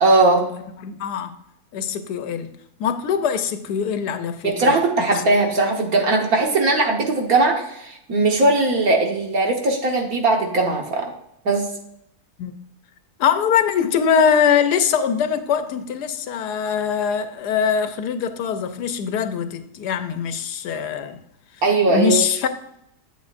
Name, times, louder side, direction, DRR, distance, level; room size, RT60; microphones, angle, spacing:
voice 1, 0.0-0.4 4.4-11.1 11.5-11.7 21.6-22.2, right 2 dB, 65° right, 1.8 m, -19 dB
voice 2, 0.5-1.3 1.7-2.5 2.8-4.7 12.4-12.6 13.2-21.2 21.9-22.5, left 7 dB, 85° left, 1.3 m, -22 dB
8.9 x 8.3 x 2.5 m
omnidirectional pair, 1.7 m